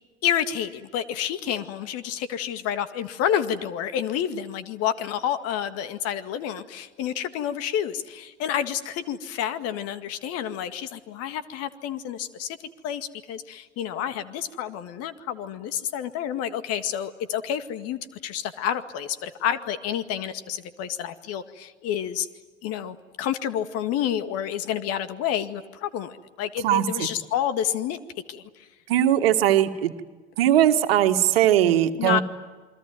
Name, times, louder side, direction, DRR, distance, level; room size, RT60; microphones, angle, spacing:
voice 1, 0.2-12.6 12.8-22.3 22.6-28.0 28.3-28.7 32.0-32.2, left 9 dB, 50° left, 11 dB, 2.0 m, -29 dB
voice 2, 26.6-27.1 28.9-29.9 30.4-32.2, right 11 dB, 65° right, 7 dB, 1.9 m, -20 dB
29.0 x 21.5 x 9.3 m, 1.3 s
figure-of-eight pair, 75°, 32 cm